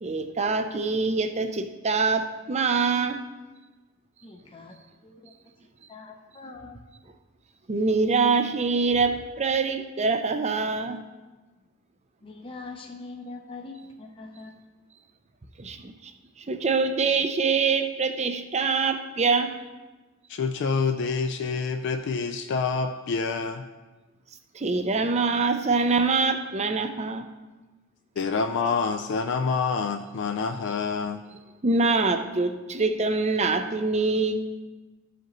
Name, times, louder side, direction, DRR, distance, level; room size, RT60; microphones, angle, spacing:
voice 1, 0.0-3.2 7.7-11.0 15.6-16.1 16.5-19.5 24.5-27.3 31.6-34.4, right 4 dB, 30° right, 7 dB, 0.5 m, -24 dB
voice 2, 4.2-5.3 5.9-6.8 12.2-14.6, left 3 dB, 25° left, 2 dB, 0.6 m, -43 dB
voice 3, 20.3-23.7 28.2-31.2, left 4 dB, 60° left, 6 dB, 0.3 m, -27 dB
13.5 x 5.0 x 3.0 m, 1.2 s
head